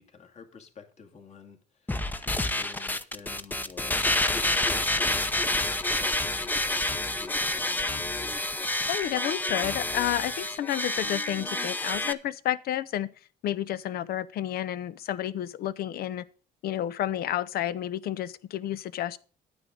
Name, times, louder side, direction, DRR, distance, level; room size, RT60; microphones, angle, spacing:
voice 1, 0.0-8.1, left 5 dB, 40° left, 2.3 m, -49 dB
sound 1, 1.9-12.1, left 2 dB, 10° left, 0.8 m, -28 dB
voice 2, 8.9-13.1 13.4-16.2 16.6-19.2, left 12 dB, 65° left, 0.8 m, -30 dB
11.0 x 9.6 x 3.8 m
cardioid pair, 110°, 17 cm